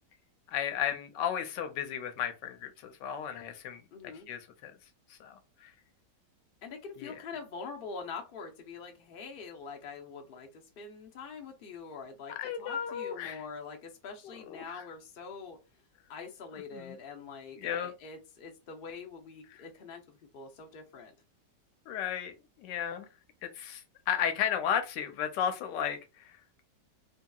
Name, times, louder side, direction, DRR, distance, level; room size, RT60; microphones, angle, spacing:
voice 1, 0.5-3.8 4.3-4.7 5.1-5.7 7.0-7.1 12.4-13.4 14.2-14.8 16.7-17.0 17.6-17.9 21.9-22.3 22.6-23.1 23.4-26.4, left 9 dB, 90° left, 1.3 m, -34 dB
voice 2, 3.9-4.3 6.6-15.8 16.1-21.1, left 5 dB, 75° left, 0.5 m, -44 dB
2.8 x 2.7 x 2.3 m
omnidirectional pair, 1.9 m